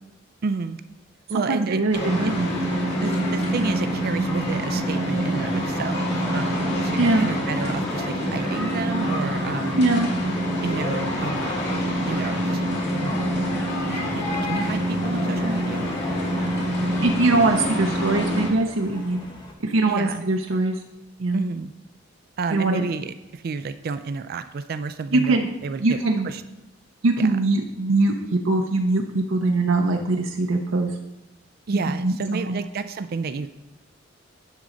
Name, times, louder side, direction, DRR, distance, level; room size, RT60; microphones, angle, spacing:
voice 1, 0.4-0.8 1.3-2.3 3.0-9.9 10.6-11.7 12.0-12.6 13.0-13.2 13.9-15.9 19.9-20.2 21.3-21.7 22.4-26.4 27.2-27.3 31.7-33.5, right 4 dB, 50° right, 11 dB, 0.4 m, -30 dB
voice 2, 1.3-2.5 7.0-7.3 9.8-10.1 17.0-19.2 19.6-20.7 21.2-21.4 22.5-22.8 25.1-25.5 25.8-26.3 27.0-28.1 28.4-30.9 32.0-32.6, right 2 dB, 80° right, 2 dB, 0.7 m, -22 dB
sound 1, 1.9-18.5, equal, 60° left, 2.3 m, -25 dB
sound 2, 13.8-19.5, left 1 dB, 25° left, 1.3 m, -41 dB
10.5 x 3.9 x 6.3 m, 0.93 s
head